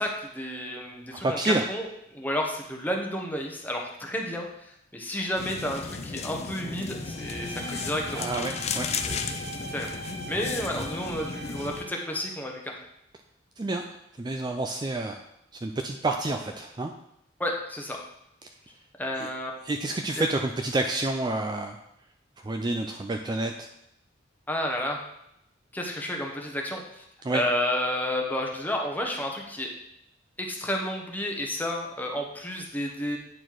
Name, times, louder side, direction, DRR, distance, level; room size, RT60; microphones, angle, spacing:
voice 1, 0.0-1.8 2.1-4.5 4.9-8.3 9.0-9.9 10.3-12.6 17.4-18.0 19.0-19.5 20.2-20.3 24.5-25.0 25.7-27.0 27.3-29.7 30.4-33.2, left 1 dB, 10° left, 1 dB, 1.0 m, -31 dB
voice 2, 1.2-1.6 8.1-8.9 13.6-13.8 14.2-15.2 15.6-16.9 19.2-19.3 19.6-21.8 22.4-23.7 27.2-27.4, right 2 dB, 25° right, 4 dB, 0.4 m, -28 dB
sound 1, 5.4-11.8, left 5 dB, 35° left, 0.4 m, -34 dB
Bowed string instrument, 7.0-12.4, right 2 dB, 65° right, 1.0 m, -41 dB
8.8 x 4.3 x 4.6 m, 0.79 s
head